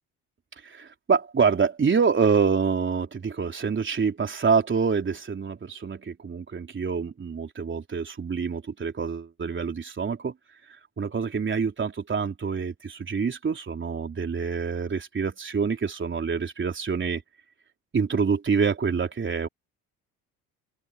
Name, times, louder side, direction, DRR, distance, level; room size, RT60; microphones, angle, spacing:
voice 1, 0.6-10.3 11.0-17.2 17.9-19.5, right 5 dB, 30° right, 3.7 m, -26 dB
supercardioid pair, 80°, 36 cm